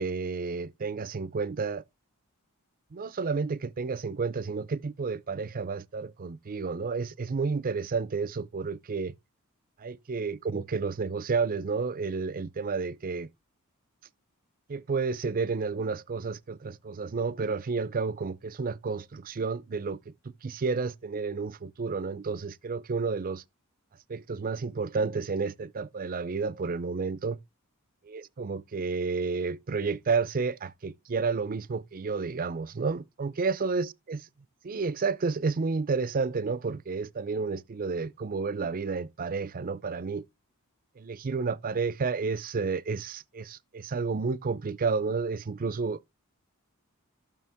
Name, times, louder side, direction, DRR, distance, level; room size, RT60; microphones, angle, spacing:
voice 1, 0.0-1.8 2.9-9.1 9.8-13.3 14.7-23.4 24.1-27.4 28.1-34.2 34.6-40.2 41.0-46.0, right 4 dB, 40° right, 0.5 m, -31 dB
14.0 x 6.3 x 3.5 m
head